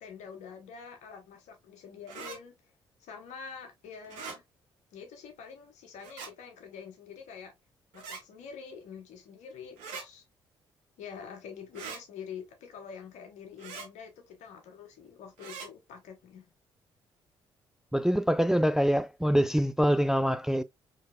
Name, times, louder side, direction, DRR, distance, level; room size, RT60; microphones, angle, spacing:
voice 1, 0.0-2.5 3.0-4.4 4.9-7.6 7.9-10.2 11.0-16.4, left 6 dB, 65° left, 1.2 m, -46 dB
sound 1, 2.1-2.4 4.0-4.4 6.0-6.3 7.9-8.2 9.8-10.0 11.7-12.0 13.6-13.9 15.4-15.7, right 5 dB, 70° right, 1.1 m, -41 dB
voice 2, 17.9-20.6, equal, 5° right, 0.3 m, -25 dB
4.5 x 3.2 x 2.3 m
figure-of-eight pair, 40°, 13 cm